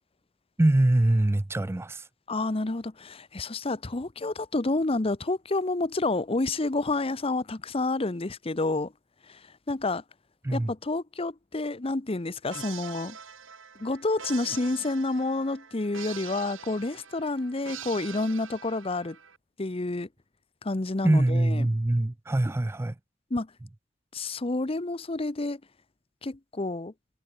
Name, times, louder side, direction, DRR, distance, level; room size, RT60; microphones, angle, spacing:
voice 1, 0.6-2.0 10.4-10.7 21.0-23.0, right 1 dB, 15° right, 0.4 m, -23 dB
voice 2, 2.3-8.9 9.3-10.0 10.5-13.2 13.8-19.2 19.6-20.1 20.6-21.7 23.3-23.5 24.1-25.6 26.2-26.9, left 2 dB, 30° left, 0.8 m, -29 dB
sound 1, 12.5-19.4, right 7 dB, 85° right, 4.3 m, -44 dB
head